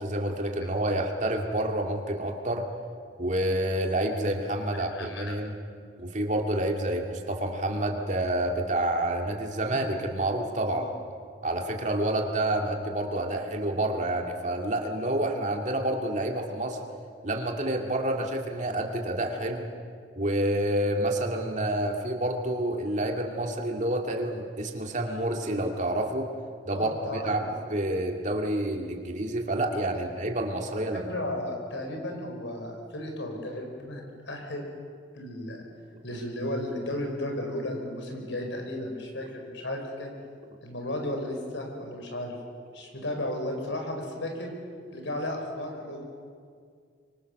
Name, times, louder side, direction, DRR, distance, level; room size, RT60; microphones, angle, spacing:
voice 1, 0.0-2.6 3.2-5.5 6.0-10.8 11.4-16.8 17.2-19.6 20.2-26.3 26.7-31.1, right 1 dB, 40° right, 2 dB, 2.5 m, -28 dB
voice 2, 4.7-5.3 9.7-9.8 10.7-10.9 26.7-27.5 29.9-30.0 30.7-34.6 35.1-35.6 36.0-40.1 40.6-42.4 42.7-44.5 44.9-46.0, left 1 dB, 85° left, 2 dB, 5.1 m, -34 dB
25.0 x 24.5 x 6.7 m, 2.1 s
head